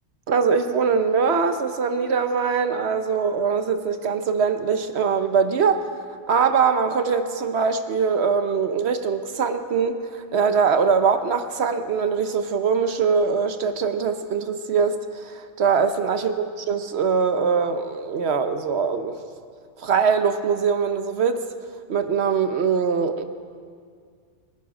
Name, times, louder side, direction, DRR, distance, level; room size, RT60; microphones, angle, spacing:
voice 1, 0.3-5.9 6.3-16.3 16.7-19.2 19.8-21.4 21.9-23.2, right 6 dB, 60° right, 9 dB, 1.0 m, -22 dB
24.5 x 10.5 x 4.9 m, 2.1 s
omnidirectional pair, 1.3 m